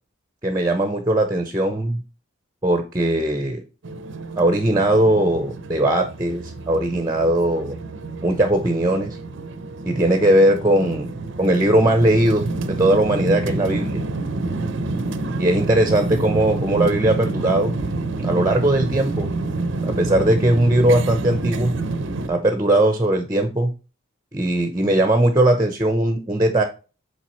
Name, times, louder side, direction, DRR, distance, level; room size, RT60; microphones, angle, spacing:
voice 1, 0.4-2.0 2.6-3.6 4.4-7.8 8.2-9.2 9.9-14.0 15.4-17.8 18.2-19.3 19.8-21.7 22.3-23.7 24.3-26.6, right 1 dB, 15° right, 7 dB, 0.7 m, -19 dB
sound 1, 3.8-22.3, right 3 dB, 60° right, 0.6 m, -28 dB
7.4 x 4.6 x 3.1 m, 0.32 s
head